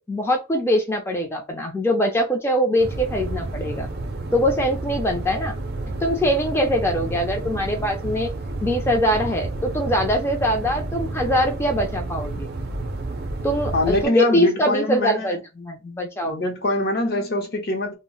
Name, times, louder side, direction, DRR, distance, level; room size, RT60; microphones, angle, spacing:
voice 1, 0.0-3.9 4.3-5.6 6.0-8.3 8.6-12.5 13.4-16.4, equal, 15° left, 0.4 m, -22 dB
sound 1, 2.8-14.1, right 2 dB, 55° right, 0.5 m, -30 dB
voice 2, 13.7-15.4 16.2-17.9, left 1 dB, 55° left, 0.7 m, -23 dB
2.0 x 2.0 x 3.7 m
head